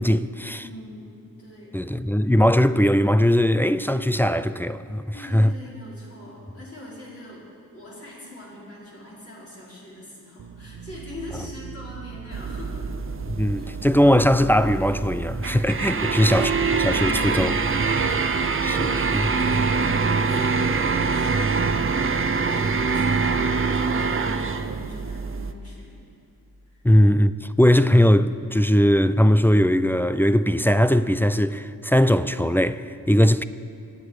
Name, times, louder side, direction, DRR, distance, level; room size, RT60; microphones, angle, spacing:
voice 1, 0.0-0.6 1.7-5.0 5.3-5.5 13.4-18.3 18.6-19.3 26.8-33.4, equal, 5° left, 0.3 m, -20 dB
voice 2, 0.6-1.8 5.1-12.9 13.5-13.7 15.9-16.3 18.6-23.4 23.7-26.0 26.7-26.8, left 1 dB, 40° left, 4.6 m, -43 dB
sound 1, 10.4-18.4, right 6 dB, 60° right, 1.0 m, -40 dB
sound 2, 12.3-25.5, right 4 dB, 40° right, 0.7 m, -24 dB
25.5 x 8.8 x 4.9 m
wide cardioid pair, 100°, 34 cm